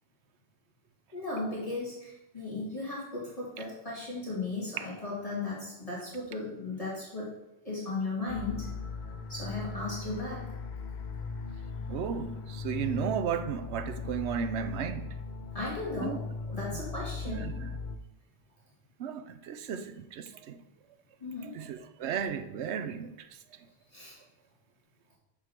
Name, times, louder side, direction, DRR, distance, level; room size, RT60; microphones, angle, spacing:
voice 1, 1.1-7.3 7.6-8.7 9.3-10.4 15.5-16.2 16.5-17.5 21.2-21.5 23.9-24.2, left 3 dB, 35° left, 2.2 m, -36 dB
sound 1, 8.3-18.0, left 4 dB, 55° left, 0.6 m, -38 dB
voice 2, 11.9-15.1 16.0-16.2 17.3-17.7 19.0-20.6 21.4-23.1, right 7 dB, 90° right, 0.9 m, -34 dB
6.3 x 5.1 x 5.9 m
omnidirectional pair, 1.1 m